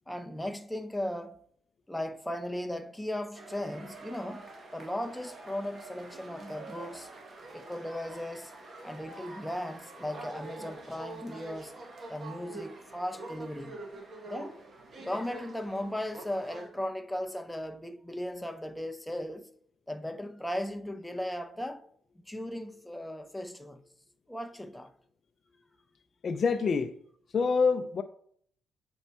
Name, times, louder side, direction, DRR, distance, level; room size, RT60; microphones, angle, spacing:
voice 1, 0.1-1.4 1.9-7.1 7.5-8.5 8.8-11.8 12.1-13.8 14.3-14.5 15.0-19.5 19.9-21.9 22.3-23.8 24.3-24.9, left 1 dB, 5° left, 0.6 m, -37 dB
sound 1, 3.3-16.7, right 2 dB, 40° right, 1.4 m, -46 dB
voice 2, 26.2-26.9 27.3-28.0, left 5 dB, 45° left, 0.4 m, -26 dB
8.1 x 4.5 x 4.2 m
cardioid pair, 90°, 0 cm